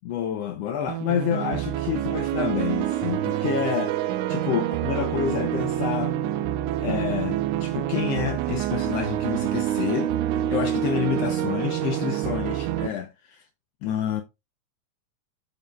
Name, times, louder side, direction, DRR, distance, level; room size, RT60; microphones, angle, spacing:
voice 1, 0.0-6.1 6.8-13.5 13.8-14.2, left 9 dB, 80° left, 1.4 m, -29 dB
sound 1, 0.9-12.9, right 12 dB, 80° right, 2.0 m, -27 dB
10.5 x 6.7 x 2.2 m
omnidirectional pair, 3.5 m